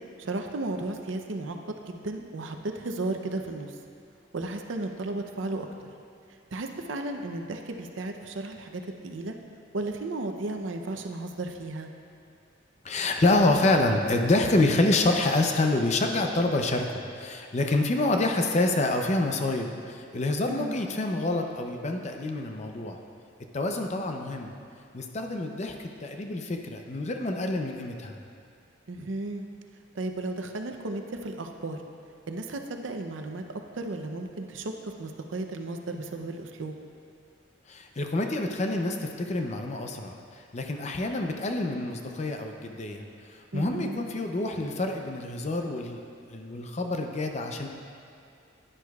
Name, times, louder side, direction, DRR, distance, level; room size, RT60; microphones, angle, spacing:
voice 1, 0.2-3.7 4.3-5.7 6.5-9.3 9.7-11.9 20.5-20.7 28.9-29.4 29.9-31.8 32.3-33.4 33.7-36.7 43.5-44.1, right 2 dB, 80° right, 5 dB, 0.6 m, -34 dB
voice 2, 12.8-23.0 23.5-24.5 24.9-28.2 37.7-43.0 43.5-46.0 46.3-47.7, left 2 dB, 35° left, 4 dB, 0.6 m, -27 dB
11.0 x 10.0 x 2.4 m, 2.4 s
head